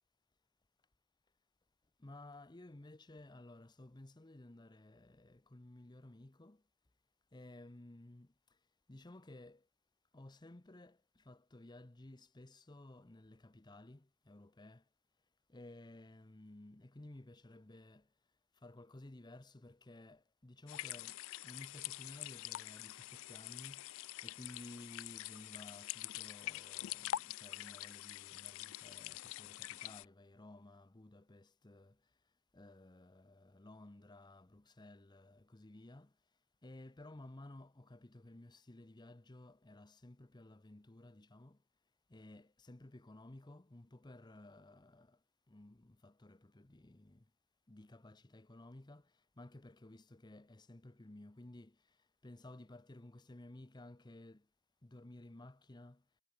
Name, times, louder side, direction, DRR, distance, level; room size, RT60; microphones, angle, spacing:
voice 1, 2.0-6.6 7.3-8.3 8.9-9.7 10.1-14.8 15.5-18.1 18.6-23.9 24.2-32.0 32.5-36.1 36.6-41.6 42.1-45.2 45.5-47.3 47.7-54.5 54.8-56.0, left 1 dB, 20° left, 0.7 m, -55 dB
sound 1, 20.7-30.1, left 14 dB, 65° left, 0.3 m, -45 dB
head